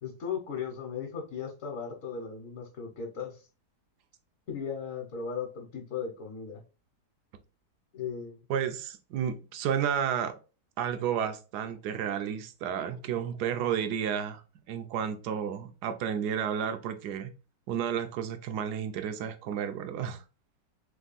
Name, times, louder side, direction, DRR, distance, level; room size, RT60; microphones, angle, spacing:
voice 1, 0.0-3.4 4.5-6.6 7.9-8.4, left 6 dB, 55° left, 1.2 m, -37 dB
voice 2, 8.5-10.4 10.8-14.4 14.7-17.3 17.7-20.2, right 8 dB, 75° right, 1.2 m, -31 dB
3.5 x 3.3 x 3.9 m
omnidirectional pair, 1.8 m